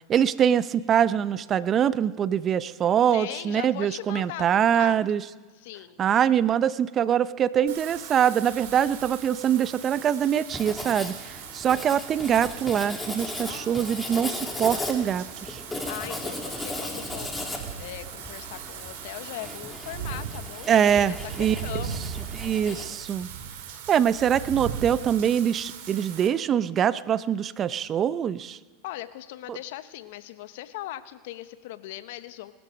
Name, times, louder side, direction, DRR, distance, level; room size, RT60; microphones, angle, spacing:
voice 1, 0.1-5.2 6.0-15.6 20.7-21.6 22.3-23.3 23.9-28.6 29.5-29.6, right 9 dB, 35° right, 17 dB, 0.6 m, -24 dB
voice 2, 3.1-5.0 5.6-6.0 13.5-14.2 15.9-17.3 17.8-22.0 22.5-23.1 28.8-32.5, left 14 dB, 65° left, 14 dB, 0.9 m, -39 dB
Wind / Rain, 7.7-26.3, right 8 dB, 65° right, 2.7 m, -39 dB
Writing, 10.5-22.9, left 2 dB, 10° left, 2.5 m, -37 dB
20.5 x 12.5 x 5.2 m, 1.4 s
hypercardioid pair, 105°, 0 cm